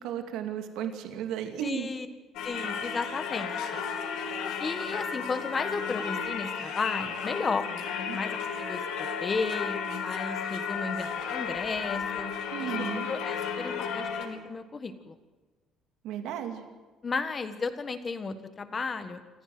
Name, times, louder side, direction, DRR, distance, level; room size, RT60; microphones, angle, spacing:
voice 1, 0.0-1.9 8.1-8.2 12.5-13.1 16.0-16.6, right 9 dB, 75° right, 5 dB, 2.4 m, -34 dB
voice 2, 1.6-2.1 2.4-3.8 4.6-12.3 12.6-12.7 13.1-15.2 17.0-19.2, left 4 dB, 25° left, 9 dB, 1.5 m, -34 dB
Singing / Church bell, 2.4-14.3, left 6 dB, 80° left, 3.2 m, -33 dB
27.0 x 15.0 x 7.8 m, 1.3 s
cardioid pair, 160°, 0 cm